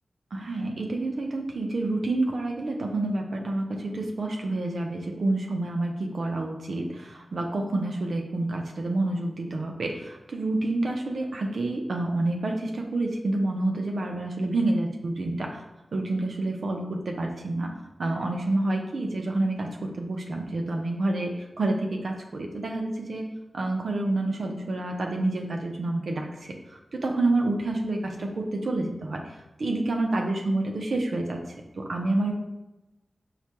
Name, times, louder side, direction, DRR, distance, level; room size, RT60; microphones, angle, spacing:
voice 1, 0.3-15.6 15.9-17.7 18.0-23.2 23.5-29.2 29.6-31.4 31.8-32.3, right 2 dB, 85° right, 2 dB, 0.5 m, -28 dB
4.8 x 2.2 x 2.9 m, 1.0 s
wide cardioid pair, 105°, 0 cm